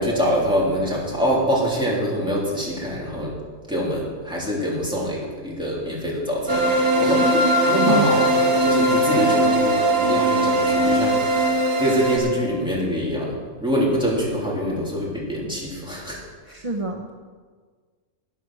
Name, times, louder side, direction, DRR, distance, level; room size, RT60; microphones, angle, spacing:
voice 1, 0.0-3.4 3.7-6.7 7.0-16.2, equal, 5° right, -5 dB, 3.1 m, -25 dB
sound 1, 6.5-12.2, right 1 dB, 85° right, 2.1 m, -19 dB
voice 2, 16.5-17.1, right 2 dB, 35° right, 1 dB, 0.6 m, -26 dB
12.5 x 9.0 x 6.1 m, 1.5 s
omnidirectional pair, 1.7 m